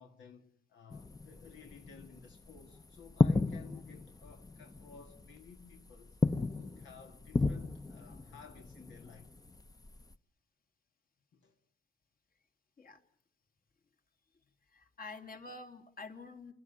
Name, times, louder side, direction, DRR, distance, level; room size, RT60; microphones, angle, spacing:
voice 1, 0.0-6.2 6.5-9.3 11.3-11.6, left 6 dB, 70° left, 2.1 m, -56 dB
sound 1, 0.9-10.1, left 3 dB, 20° left, 0.9 m, -35 dB
voice 2, 14.7-16.5, left 3 dB, 45° left, 2.9 m, -48 dB
28.0 x 13.5 x 9.7 m
cardioid pair, 90°, 20 cm